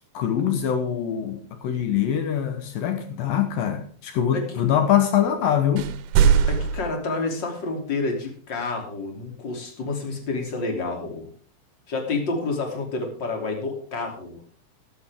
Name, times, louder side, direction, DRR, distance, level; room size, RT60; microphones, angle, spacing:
voice 1, 0.1-6.0, left 9 dB, 90° left, 2.0 m, -23 dB
sound 1, 5.8-6.9, right 7 dB, 80° right, 3.1 m, -20 dB
voice 2, 6.5-11.3 11.9-14.4, left 3 dB, 30° left, 2.7 m, -29 dB
13.5 x 13.5 x 3.6 m
omnidirectional pair, 5.6 m